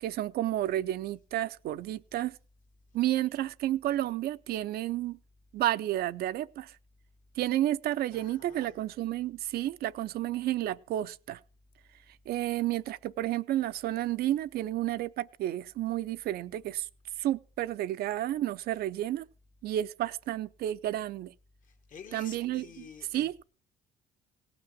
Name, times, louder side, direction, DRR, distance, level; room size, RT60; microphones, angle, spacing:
voice 1, 0.0-2.4 2.9-5.2 5.5-6.8 7.4-11.4 12.3-16.9 17.2-19.3 19.6-21.3 22.1-23.4, right 13 dB, 65° right, 0.5 m, -31 dB
voice 2, 8.1-8.8 21.6-23.3, left 6 dB, 50° left, 1.4 m, -50 dB
17.5 x 6.0 x 6.1 m
cardioid pair, 110°, 17 cm